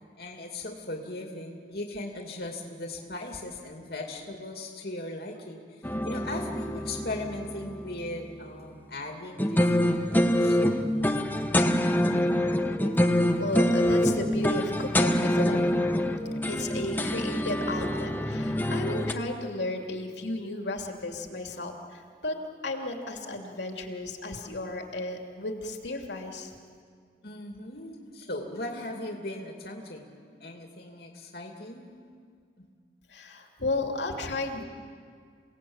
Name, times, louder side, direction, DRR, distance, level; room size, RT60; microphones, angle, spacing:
voice 1, 0.2-10.6 27.2-30.1 30.4-31.9, left 2 dB, 65° left, 1 dB, 2.5 m, -38 dB
sound 1, 5.8-8.2 9.4-19.1, left 1 dB, 10° left, 1.0 m, -26 dB
voice 2, 13.0-15.6 16.5-22.4 22.6-26.5 33.1-34.6, left 2 dB, 85° left, 2 dB, 2.8 m, -34 dB
28.5 x 18.0 x 8.8 m, 2.1 s
head